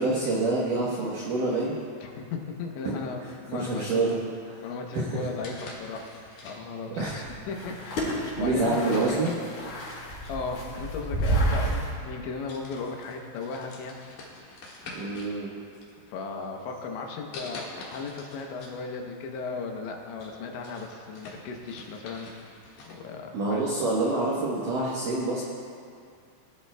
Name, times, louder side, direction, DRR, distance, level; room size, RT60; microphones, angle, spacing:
voice 1, 0.0-1.8 2.8-3.0 3.5-4.2 4.5-4.6 4.9-5.5 7.0-7.2 8.4-9.3 14.9-15.6 23.3-25.4, right 2 dB, 80° right, -5 dB, 1.8 m, -27 dB
voice 2, 2.0-4.2 4.6-6.1 6.4-9.2 9.9-14.0 16.1-22.5 22.9-23.6, left 4 dB, 75° left, 2 dB, 3.1 m, -36 dB
sound 1, 5.3-6.9 7.6-7.9 8.9-10.5 11.5-11.6 12.1-12.2 12.5-15.4 15.7-16.4 17.3-18.8 19.1-19.2 19.7-23.0, left 3 dB, 60° left, 2.3 m, -45 dB
sound 2, 7.0-11.9, right 1 dB, 45° left, 4.3 m, -30 dB
20.0 x 11.5 x 2.2 m, 2.3 s
omnidirectional pair, 5.5 m